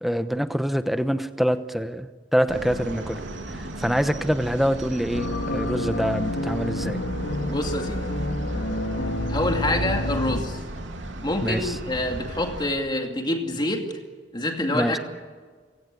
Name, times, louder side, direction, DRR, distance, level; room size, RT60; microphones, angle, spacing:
voice 1, 0.0-3.2 3.6-7.0 11.4-11.8 14.7-15.0, equal, ahead, 10 dB, 1.0 m, -25 dB
sound 1, 2.5-12.7, right 1 dB, 85° right, 3.0 m, -36 dB
sound 2, 5.1-10.4, left 1 dB, 75° left, 2.7 m, -28 dB
voice 2, 7.5-8.0 9.3-10.6 11.2-13.8 14.3-15.0, left 1 dB, 25° left, 4 dB, 2.3 m, -26 dB
28.0 x 17.5 x 8.4 m, 1.5 s
head